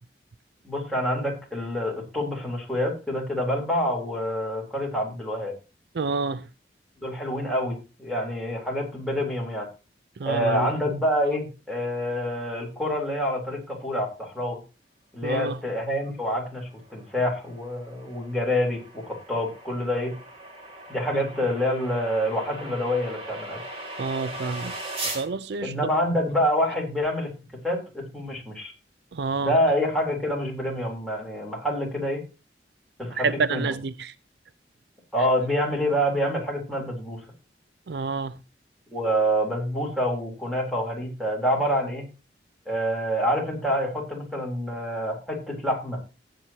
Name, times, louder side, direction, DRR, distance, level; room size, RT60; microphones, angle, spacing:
voice 1, 0.6-5.5 7.0-9.7 10.2-14.6 15.1-20.1 20.9-23.6 25.6-27.3 27.6-28.7 29.4-32.2 33.0-33.7 35.1-37.2 38.9-42.1 42.7-46.0, equal, ahead, 3.7 m, -27 dB
voice 2, 5.9-6.5 10.2-10.7 15.2-15.6 21.1-21.2 23.9-25.7 29.1-29.5 33.1-34.1 37.9-38.4, right 4 dB, 65° right, 0.4 m, -29 dB
sound 1, 16.6-25.2, right 1 dB, 35° right, 3.1 m, -39 dB
15.0 x 8.5 x 2.9 m
head